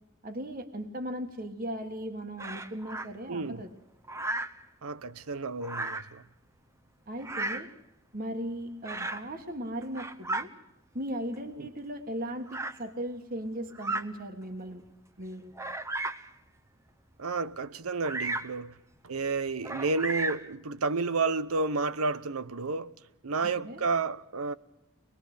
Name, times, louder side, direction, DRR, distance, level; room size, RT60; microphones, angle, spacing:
voice 1, 0.2-3.7 7.1-7.7 8.1-10.5 10.9-14.8 15.2-15.5 23.6-23.8, equal, 40° right, 1.5 m, -37 dB
Bird vocalization bird call bird song, 2.4-3.1 4.1-4.6 5.6-6.1 7.2-7.7 8.8-9.3 9.8-10.5 11.3-11.4 12.5-12.8 13.7-14.1 14.7-14.8 15.5-16.3 18.0-18.6 19.6-20.5, right 2 dB, 15° right, 0.8 m, -34 dB
voice 2, 3.3-3.6 4.8-6.2 11.6-11.7 17.2-18.8 19.0-22.9 23.2-24.5, right 4 dB, 90° right, 0.9 m, -31 dB
24.0 x 20.5 x 6.7 m
head